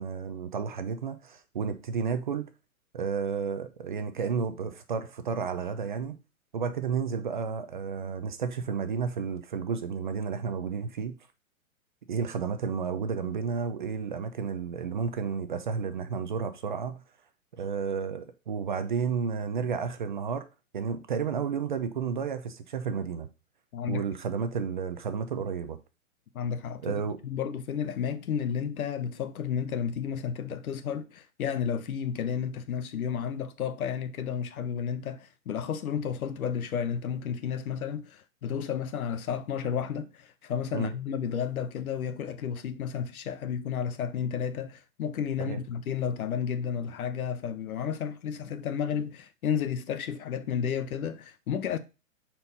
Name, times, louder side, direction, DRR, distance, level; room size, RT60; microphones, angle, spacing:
voice 1, 0.0-2.5 2.9-6.2 6.5-11.1 12.1-17.0 17.6-20.5 20.7-23.3 23.9-25.8 26.8-27.2 40.7-40.9 45.4-45.6, right 6 dB, 35° right, 0.4 m, -32 dB
voice 2, 26.3-51.8, left 7 dB, 80° left, 0.9 m, -32 dB
4.4 x 4.1 x 5.4 m
hypercardioid pair, 165°, 42 cm